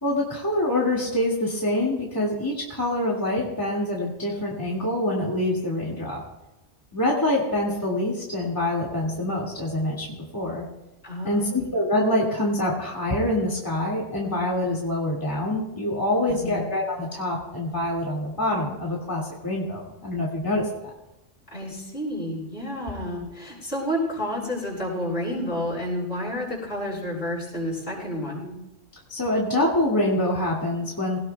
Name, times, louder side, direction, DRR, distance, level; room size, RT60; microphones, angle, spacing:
voice 1, 0.0-6.2 6.9-10.6 11.2-20.9 29.1-31.2, left 1 dB, 15° left, -5 dB, 2.3 m, -25 dB
voice 2, 11.0-11.7 16.3-16.6 21.5-28.5, left 1 dB, 50° left, -5 dB, 6.7 m, -30 dB
21.0 x 18.5 x 2.4 m, 0.96 s
omnidirectional pair, 1.3 m